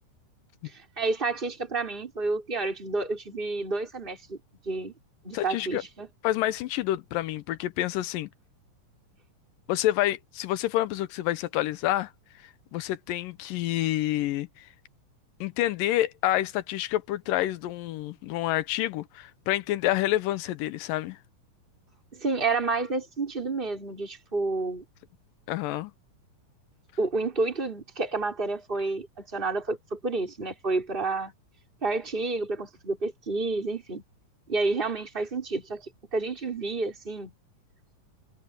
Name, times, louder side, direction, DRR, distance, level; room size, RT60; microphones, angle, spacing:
voice 1, 0.6-4.4 4.7-4.9 5.2-6.1 22.1-24.8 27.0-31.3 31.8-34.0 34.5-37.3, right 3 dB, 15° right, 5.6 m, -30 dB
voice 2, 5.3-5.8 6.2-8.3 9.7-12.1 12.7-14.7 15.4-21.2 25.5-25.9, left 14 dB, 85° left, 2.5 m, -28 dB
omnidirectional pair, 3.9 m